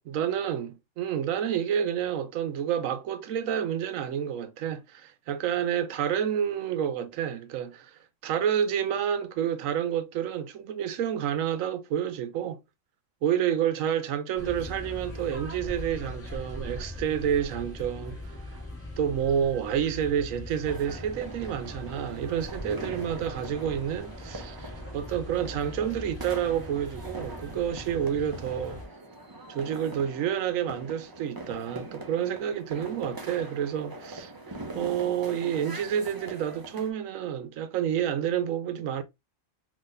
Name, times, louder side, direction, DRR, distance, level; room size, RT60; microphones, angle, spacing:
voice 1, 0.0-12.6 13.2-18.3 19.0-28.8 29.5-34.3 34.7-39.0, right 9 dB, 90° right, 1.0 m, -29 dB
sound 1, 14.4-28.9, left 1 dB, 10° left, 1.5 m, -41 dB
sound 2, 20.7-36.9, right 2 dB, 30° right, 0.4 m, -43 dB
3.7 x 2.9 x 2.5 m
omnidirectional pair, 1.3 m